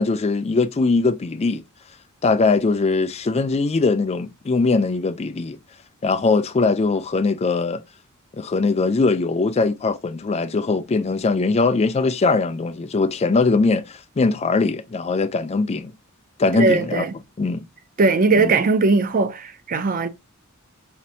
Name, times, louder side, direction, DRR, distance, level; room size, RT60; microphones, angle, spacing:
voice 1, 0.0-1.6 2.2-5.6 6.0-7.8 8.4-15.9 16.4-17.0 17.4-17.6 18.4-18.5, left 3 dB, 30° left, 0.4 m, -21 dB
voice 2, 16.5-17.1 18.0-20.1, right 3 dB, 40° right, 0.4 m, -19 dB
4.3 x 2.5 x 2.6 m
head